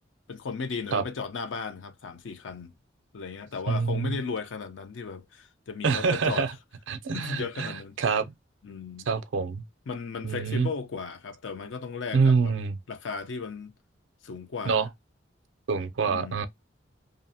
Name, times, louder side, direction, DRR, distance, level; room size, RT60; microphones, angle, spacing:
voice 1, 0.3-2.7 3.1-6.5 7.1-7.9 8.6-9.1 9.9-12.5 12.9-13.7 14.2-14.8 16.1-16.4, left 5 dB, 75° left, 0.5 m, -35 dB
voice 2, 3.7-4.2 5.8-6.5 6.9-8.3 9.1-9.6 10.2-10.7 12.1-12.8 14.7-14.9 15.7-16.5, right 5 dB, 80° right, 0.4 m, -26 dB
2.6 x 2.0 x 2.6 m
head